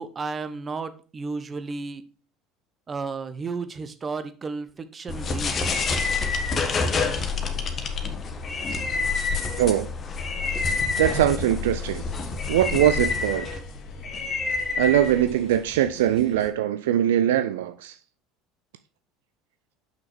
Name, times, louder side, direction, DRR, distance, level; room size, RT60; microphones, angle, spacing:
voice 1, 0.0-2.0 2.9-5.7, right 4 dB, 30° right, 0.9 m, -33 dB
sound 1, 5.1-15.7, left 4 dB, 35° left, 1.3 m, -27 dB
voice 2, 9.6-9.9 11.0-12.0 12.5-13.5 14.8-18.0, right 11 dB, 70° right, 0.4 m, -22 dB
sound 2, 10.9-16.5, equal, 50° left, 1.4 m, -46 dB
6.5 x 6.1 x 3.3 m
figure-of-eight pair, 65°, 0 cm